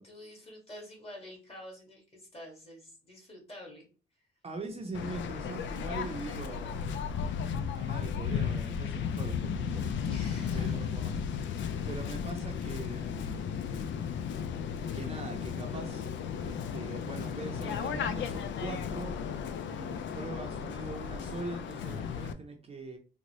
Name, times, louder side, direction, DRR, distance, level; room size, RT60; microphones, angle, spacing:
voice 1, 0.0-3.9 10.0-10.9, left 1 dB, 30° left, -1 dB, 1.9 m, -48 dB
voice 2, 4.4-6.9 7.6-9.9 10.5-13.7 14.9-16.1 16.4-19.2 19.7-23.0, right 3 dB, 30° right, 2 dB, 0.7 m, -42 dB
Waves surf, 4.9-22.3, left 7 dB, 70° left, 0.5 m, -35 dB
3.8 x 2.2 x 3.0 m, 0.36 s
cardioid pair, 90°, 20 cm